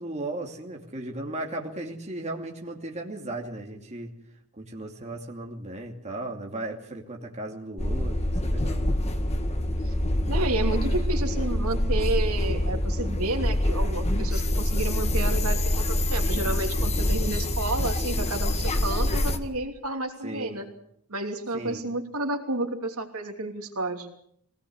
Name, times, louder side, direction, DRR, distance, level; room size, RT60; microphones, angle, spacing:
voice 1, 0.0-4.1 4.6-9.0 20.2-20.6 21.5-21.9, right 2 dB, 30° right, 1 dB, 2.6 m, -36 dB
sound 1, 7.8-19.4, left 1 dB, 30° left, 1.8 m, -25 dB
voice 2, 10.3-20.7 21.1-24.1, right 2 dB, 70° right, 4 dB, 3.0 m, -31 dB
23.0 x 18.5 x 8.1 m, 0.68 s
head